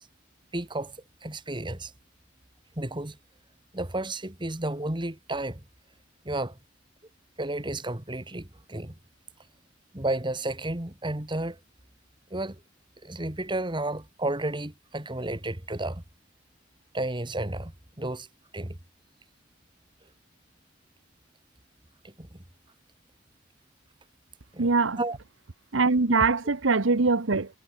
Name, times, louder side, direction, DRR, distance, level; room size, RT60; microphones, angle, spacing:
voice 1, 0.5-1.0 1.2-1.9 2.8-3.2 3.7-5.6 6.3-6.6 7.4-8.9 9.9-11.6 12.3-12.6 13.0-16.0 16.9-18.3 18.5-18.8 22.0-22.4 24.5-24.7 25.0-25.2, right 1 dB, 25° right, 2.0 m, -32 dB
voice 2, 24.6-25.0 25.7-27.5, right 3 dB, 75° right, 1.1 m, -22 dB
head